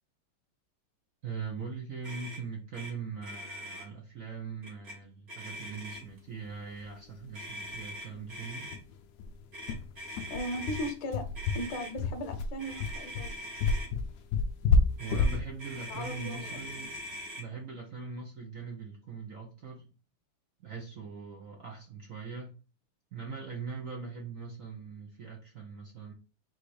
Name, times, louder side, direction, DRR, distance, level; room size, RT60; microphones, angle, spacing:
voice 1, 1.2-8.7 15.0-16.9 17.4-19.9 20.6-22.5 23.1-26.1, right 5 dB, 65° right, 0 dB, 0.8 m, -41 dB
Motor vehicle (road), 2.0-2.4 2.7-2.9 3.2-3.9 4.6-5.0 5.3-6.2 7.3-8.8 9.5-10.9 11.3-11.9 12.6-13.9 15.0-17.4, equal, 45° right, 1.7 m, -42 dB
sound 1, 6.8-6.9 7.2-7.3 7.6-7.8 8.1-8.2 8.7-17.1, left 3 dB, 90° left, 0.8 m, -30 dB
voice 2, 10.3-11.3 11.5-13.4 15.9-16.9, equal, 65° left, 6 dB, 1.3 m, -37 dB
4.3 x 2.6 x 4.7 m, 0.33 s
omnidirectional pair, 2.4 m